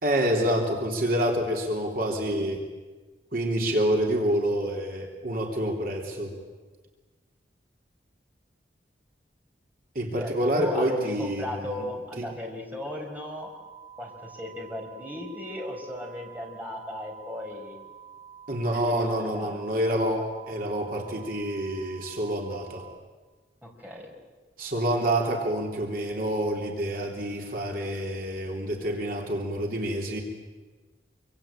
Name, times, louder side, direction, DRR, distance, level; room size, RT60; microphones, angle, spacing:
voice 1, 0.0-2.6 3.3-6.4 9.9-11.9 12.2-12.3 18.5-22.9 24.6-30.2, right 1 dB, 50° right, 1 dB, 3.4 m, -27 dB
voice 2, 10.2-13.5 14.0-17.7 18.6-19.6 23.6-24.1, left 1 dB, 10° right, -1 dB, 5.0 m, -36 dB
sound 1, 13.4-22.9, right 8 dB, 20° left, 5.3 m, -48 dB
26.5 x 24.5 x 9.0 m, 1.3 s
head